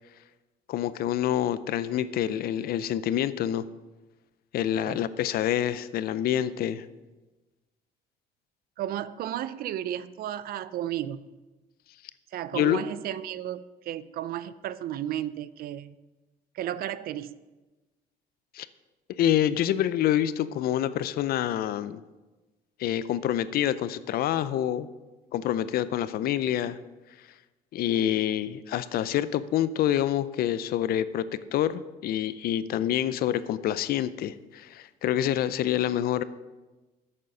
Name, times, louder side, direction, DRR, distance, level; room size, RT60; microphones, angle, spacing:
voice 1, 0.7-3.7 4.5-6.9 12.5-12.8 18.5-18.7 19.2-22.0 22.8-24.9 25.3-26.8 27.7-36.2, left 11 dB, 65° left, 15 dB, 0.5 m, -27 dB
voice 2, 8.8-11.4 12.3-16.0 16.5-17.4, right 11 dB, 60° right, 16 dB, 0.4 m, -33 dB
8.7 x 6.6 x 5.4 m, 1.2 s
cardioid pair, 110°, 17 cm